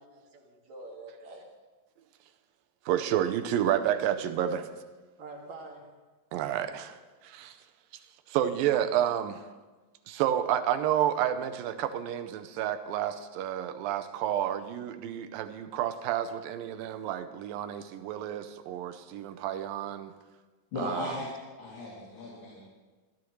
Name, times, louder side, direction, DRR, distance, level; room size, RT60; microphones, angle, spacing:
voice 1, 0.0-1.5 5.2-5.9, right 2 dB, 55° right, -1 dB, 3.3 m, -46 dB
voice 2, 2.9-4.7 6.3-7.6 8.3-9.4 10.1-20.1 20.8-21.2, right 10 dB, 90° right, 9 dB, 2.5 m, -30 dB
voice 3, 20.7-21.3 21.6-22.6, left 3 dB, 70° left, -5 dB, 4.4 m, -37 dB
22.0 x 14.5 x 3.2 m, 1.3 s
omnidirectional pair, 4.0 m